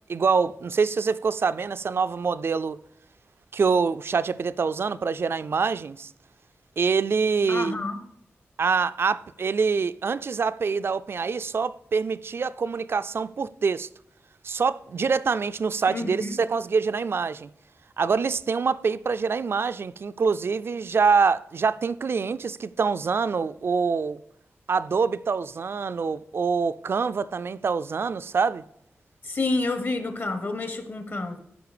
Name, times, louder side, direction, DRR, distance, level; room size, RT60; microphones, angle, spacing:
voice 1, 0.1-2.8 3.5-6.1 6.8-7.8 8.6-13.9 14.4-17.5 18.0-24.2 24.7-28.6, right 5 dB, 60° right, 0.4 m, -25 dB
voice 2, 7.5-8.0 15.9-16.4 29.2-31.4, left 2 dB, 50° left, 1.1 m, -29 dB
13.0 x 5.1 x 5.0 m
wide cardioid pair, 130°, 5 cm